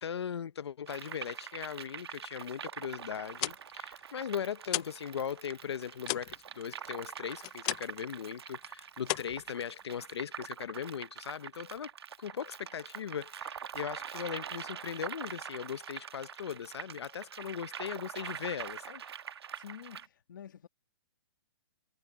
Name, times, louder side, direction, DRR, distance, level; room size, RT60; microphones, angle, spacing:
voice 1, 0.0-11.9 12.2-19.0, left 8 dB, 85° left, 0.7 m, -39 dB
sound 1, 0.9-20.1, right 8 dB, 75° right, 1.2 m, -44 dB
sound 2, 3.2-5.1 5.4-8.1 8.4-8.7 9.0-10.1, left 19 dB, 15° left, 0.5 m, -37 dB
voice 2, 19.6-20.7, left 9 dB, 50° left, 2.0 m, -48 dB
hypercardioid pair, 175°, 13 cm